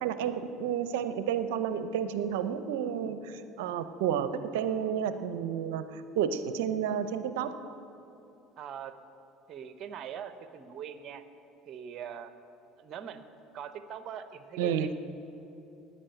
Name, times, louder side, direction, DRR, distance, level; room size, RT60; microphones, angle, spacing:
voice 1, 0.0-7.6 14.6-14.9, right 8 dB, 80° right, 11 dB, 0.6 m, -31 dB
voice 2, 8.6-9.0 9.5-11.2 11.7-12.3 12.8-13.2 13.5-14.9, right 8 dB, 50° right, 11 dB, 0.9 m, -42 dB
9.9 x 9.3 x 9.0 m, 2.9 s
hypercardioid pair, 75°, 0 cm